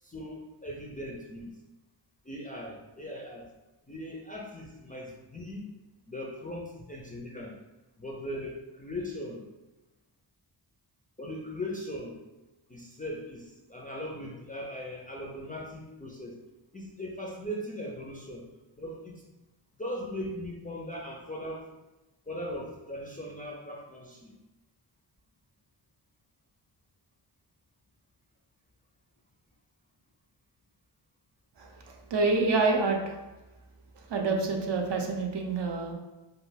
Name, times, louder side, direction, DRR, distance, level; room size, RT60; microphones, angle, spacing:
voice 1, 0.0-1.6 2.2-3.5 3.9-5.7 6.1-7.6 8.0-9.5 11.2-12.2 12.7-16.4 16.7-18.4 18.7-19.2 19.8-21.6 22.3-24.4, left 1 dB, 20° left, -2 dB, 0.3 m, -39 dB
voice 2, 31.6-33.2 34.1-35.9, right 3 dB, 55° right, 2 dB, 0.6 m, -27 dB
2.3 x 2.2 x 3.2 m, 1.1 s
cardioid pair, 70°, 49 cm